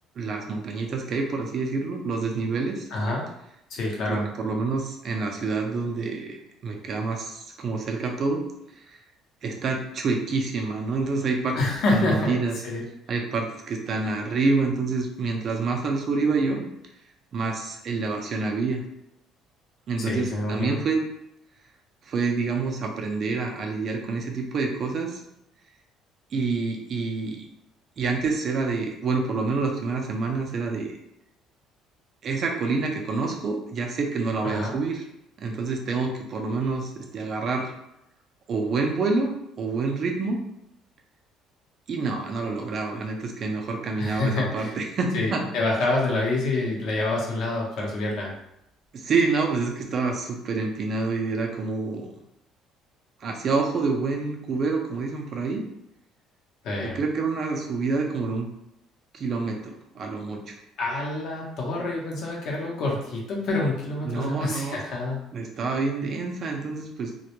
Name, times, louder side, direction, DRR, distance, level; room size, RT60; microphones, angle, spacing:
voice 1, 0.2-2.9 4.1-8.4 8.7-9.0 9.4-11.6 11.9-12.6 13.1-16.6 17.3-18.8 19.9-21.0 22.0-25.2 26.3-27.4 28.0-31.0 32.2-35.0 35.4-37.7 38.5-40.4 41.9-45.4 48.9-52.1 53.2-55.6 56.8-58.5 59.1-60.5 64.0-64.8 65.3-67.1, right 4 dB, 45° right, 1 dB, 0.4 m, -27 dB
voice 2, 2.9-3.3 3.7-4.3 11.5-12.3 12.6-12.8 20.0-20.8 34.4-34.7 44.0-44.7 45.1-48.3 56.6-57.0 60.8-65.3, left 2 dB, 60° left, -2 dB, 0.7 m, -27 dB
2.2 x 2.0 x 2.9 m, 0.81 s
cardioid pair, 135°, 0 cm